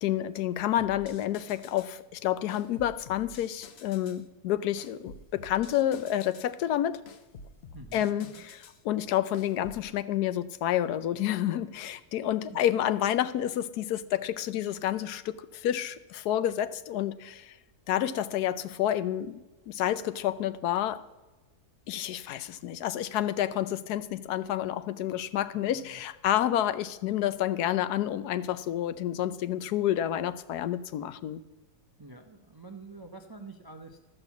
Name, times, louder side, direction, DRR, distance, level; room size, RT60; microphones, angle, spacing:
voice 1, 0.0-7.0 7.9-8.3 8.8-17.5 17.9-19.4 19.7-21.0 21.9-31.4, left 11 dB, 80° left, 14 dB, 1.2 m, -29 dB
sound 1, 0.8-2.0 2.5-4.2 4.8-6.5 7.1-8.8 9.3-9.9, left 3 dB, 50° left, 0.9 m, -49 dB
voice 2, 7.7-8.3 12.5-12.6 25.5-26.0 32.0-34.1, right 3 dB, 35° right, 5 dB, 0.3 m, -47 dB
13.5 x 6.6 x 7.0 m, 1.2 s
omnidirectional pair, 1.7 m